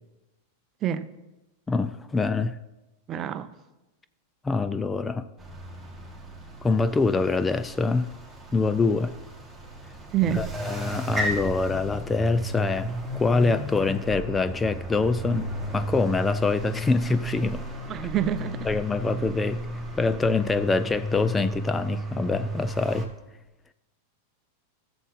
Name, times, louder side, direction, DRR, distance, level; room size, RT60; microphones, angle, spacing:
voice 1, 1.7-2.6 4.4-5.3 6.6-8.1 8.5-9.1 10.3-17.7 18.7-19.6 20.0-23.1, left 3 dB, 15° left, 0.4 m, -25 dB
voice 2, 3.1-3.5 10.1-10.5 17.9-18.7, right 10 dB, 35° right, 0.6 m, -27 dB
sound 1, 5.4-23.1, right 1 dB, 5° right, 2.4 m, -34 dB
14.5 x 7.0 x 4.3 m
hypercardioid pair, 105°, 0 cm